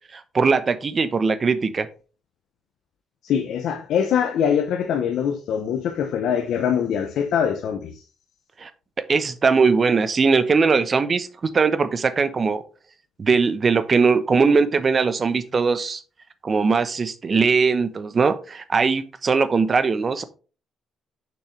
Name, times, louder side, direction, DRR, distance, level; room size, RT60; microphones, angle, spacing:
voice 1, 0.1-1.9 8.6-8.7 9.1-12.6 13.2-16.0 16.4-20.2, right 4 dB, 40° right, 0.8 m, -20 dB
voice 2, 3.2-8.0, left 8 dB, 75° left, 0.8 m, -23 dB
6.4 x 6.2 x 3.2 m
cardioid pair, 75°, 0 cm